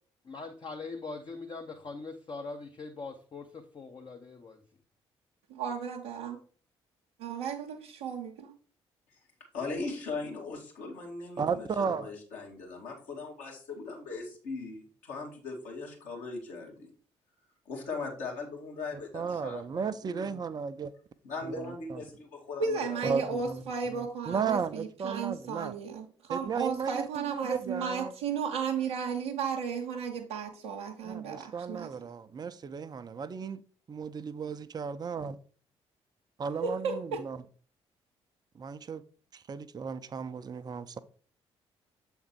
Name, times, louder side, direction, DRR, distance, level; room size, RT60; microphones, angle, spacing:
voice 1, 0.2-4.6, left 3 dB, 35° left, 0.8 m, -42 dB
voice 2, 5.5-6.4 7.2-8.5 22.6-31.9 36.6-37.2, right 6 dB, 75° right, 0.7 m, -34 dB
voice 3, 9.5-16.9 17.7-20.3 21.2-23.0, left 3 dB, 60° left, 1.9 m, -39 dB
voice 4, 11.4-12.1 19.1-20.9 21.4-22.0 23.0-25.7 26.3-28.1 31.0-33.6 33.9-35.4 36.4-37.4 38.5-39.0 39.3-41.0, right 6 dB, 30° right, 0.5 m, -35 dB
7.3 x 3.6 x 4.4 m
figure-of-eight pair, 45°, 14 cm